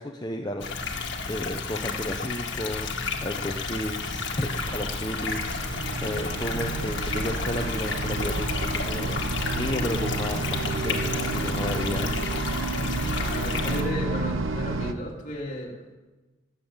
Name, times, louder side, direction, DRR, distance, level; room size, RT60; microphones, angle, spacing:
voice 1, 0.0-2.9 3.2-9.2 9.6-12.2, left 1 dB, 20° left, 3 dB, 0.8 m, -33 dB
sound 1, 0.6-13.8, left 4 dB, 55° left, 1.9 m, -32 dB
sound 2, 3.0-14.9, right 2 dB, 75° right, 1.0 m, -31 dB
voice 2, 13.2-16.0, left 1 dB, 35° left, -1 dB, 3.0 m, -34 dB
21.0 x 7.3 x 8.8 m, 1.2 s
head